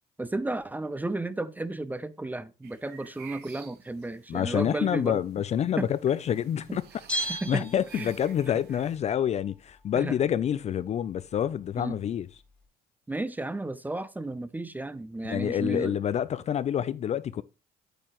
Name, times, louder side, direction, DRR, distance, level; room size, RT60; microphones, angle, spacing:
voice 1, 0.2-5.2 5.8-5.9 6.7-6.8 7.1-7.6 7.9-8.1 9.9-10.2 11.8-12.0 13.1-16.0, right 2 dB, 10° right, 0.6 m, -33 dB
sound 1, 2.6-9.0, right 9 dB, 75° right, 1.2 m, -52 dB
voice 2, 4.3-6.8 7.2-12.3 15.2-17.4, left 9 dB, 40° left, 0.4 m, -27 dB
Bell, 7.1-8.5 8.8-8.9, right 1 dB, 5° left, 1.8 m, -34 dB
8.9 x 8.2 x 3.0 m
cardioid pair, 110°, 17 cm